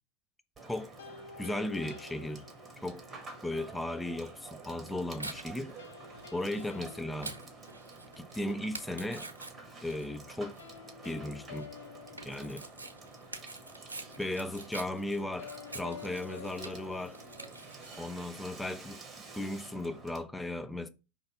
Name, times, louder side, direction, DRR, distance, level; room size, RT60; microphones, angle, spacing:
Water / Water tap faucet / Sink (filling or washing), 0.6-20.2, right 3 dB, 15° right, 1.2 m, -50 dB
sound 1, 1.0-3.1 5.8-8.2 10.6-13.1 15.4-18.2, left 6 dB, 65° left, 0.8 m, -50 dB
voice 1, 1.4-2.5 2.8-3.0 3.4-5.7 6.3-7.4 8.2-9.3 9.8-10.6 11.0-11.7 12.2-12.7 14.2-17.2 18.0-19.0 19.3-20.9, left 1 dB, 5° left, 0.5 m, -36 dB
Tearing, 4.5-18.0, right 2 dB, 80° right, 0.9 m, -47 dB
5.6 x 3.2 x 5.7 m
figure-of-eight pair, 90°, 0 cm